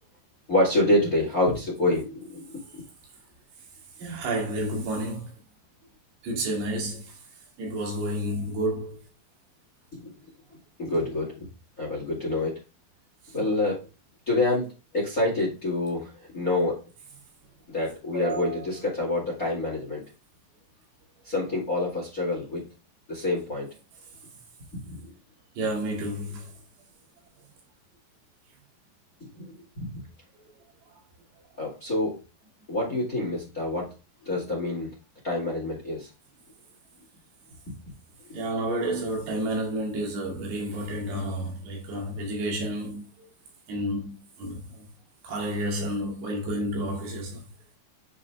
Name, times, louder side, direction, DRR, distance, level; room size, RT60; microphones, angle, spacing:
voice 1, 0.5-2.6 10.0-10.1 10.8-11.5 11.8-12.6 13.3-13.8 14.3-14.7 14.9-16.8 17.7-20.0 21.2-22.7 23.1-23.7 24.9-25.0 29.4-30.0 31.6-32.2 32.7-33.9 34.2-34.9 35.2-36.1 37.7-37.8, left 2 dB, 30° left, 1.7 m, -27 dB
voice 2, 4.0-5.3 6.2-7.2 7.6-9.0 18.1-18.6 25.6-26.5 38.3-43.3 43.7-44.9 45.2-47.4, right 1 dB, 75° right, 4.4 m, -30 dB
9.3 x 5.2 x 2.2 m
omnidirectional pair, 4.9 m